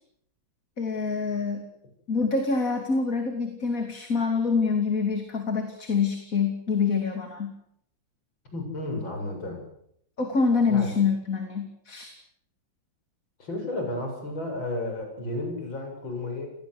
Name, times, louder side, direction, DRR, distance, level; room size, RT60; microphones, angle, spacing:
voice 1, 0.8-1.7 2.1-7.5 10.2-12.1, left 5 dB, 45° left, 5 dB, 3.2 m, -26 dB
voice 2, 8.5-9.6 10.7-10.9 13.4-16.5, left 2 dB, 85° left, 3 dB, 8.2 m, -32 dB
30.0 x 20.5 x 8.0 m, 0.73 s
omnidirectional pair, 2.1 m